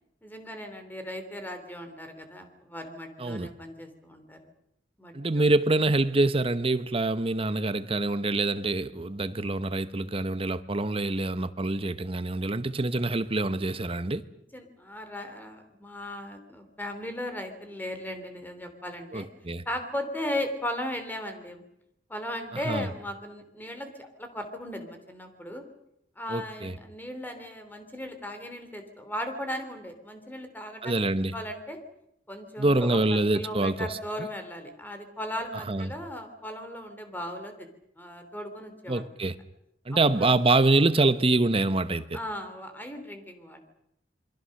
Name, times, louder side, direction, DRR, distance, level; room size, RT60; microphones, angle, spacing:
voice 1, 0.2-4.4 5.0-5.4 14.5-19.3 19.6-21.6 22.1-25.6 26.2-31.0 31.3-31.8 32.3-37.7 38.0-39.1 39.9-40.3 42.1-43.6, left 1 dB, 10° left, 3.1 m, -37 dB
voice 2, 5.1-14.2 19.1-19.6 22.7-22.9 26.3-26.7 30.8-31.3 32.6-33.9 35.5-35.9 38.9-39.3 39.9-42.2, right 2 dB, 30° right, 0.9 m, -25 dB
27.5 x 22.5 x 6.5 m
head